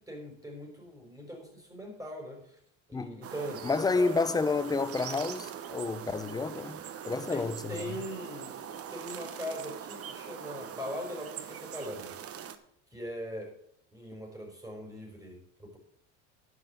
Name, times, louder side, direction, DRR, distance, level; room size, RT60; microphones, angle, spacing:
voice 1, 0.0-2.6 2.9-3.6 3.9-4.1 7.3-8.6 8.9-12.1 12.9-13.5 13.9-15.8, equal, 10° right, 5.6 m, -40 dB
sound 1, 3.2-12.6, right 9 dB, 45° right, 1.1 m, -42 dB
voice 2, 3.6-6.8 7.0-7.6, left 4 dB, 10° left, 0.7 m, -29 dB
11.0 x 6.3 x 7.2 m
supercardioid pair, 100°, 34 cm